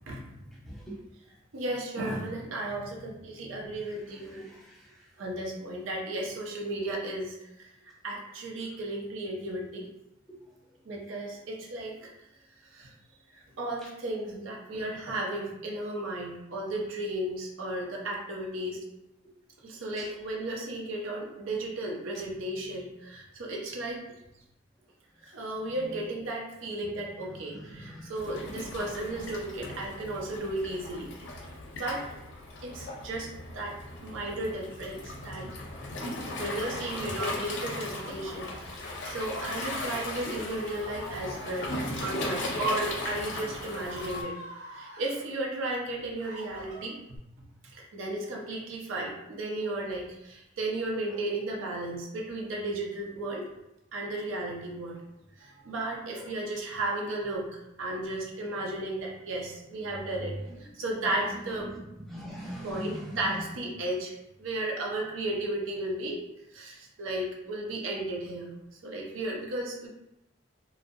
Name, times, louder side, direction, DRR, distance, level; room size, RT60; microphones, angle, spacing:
voice 1, 1.5-4.4 5.2-7.7 8.0-9.9 10.9-12.1 12.7-12.9 13.3-18.8 19.6-24.0 25.2-31.1 31.7-32.2 32.6-33.8 34.0-35.5 36.4-41.7 42.0-44.4 44.7-47.0 47.7-53.5 53.9-55.0 55.4-57.5 57.8-61.7 62.6-66.2 66.5-68.5 68.8-69.9, right 1 dB, 90° right, -1 dB, 0.5 m, -34 dB
voice 2, 3.8-5.0 10.3-10.4 20.0-20.1 25.9-26.0 27.3-28.2 29.1-29.2 51.1-51.2 56.2-56.3 60.4-60.5 61.3-63.4, equal, ahead, -6 dB, 0.5 m, -42 dB
Waves surf, 28.2-44.2, left 1 dB, 65° left, 0.5 m, -37 dB
Screaming, 39.3-41.7 42.5-42.8 43.2-45.2 45.8-47.2, equal, 60° right, 0.9 m, -46 dB
2.5 x 2.0 x 2.4 m, 0.87 s
head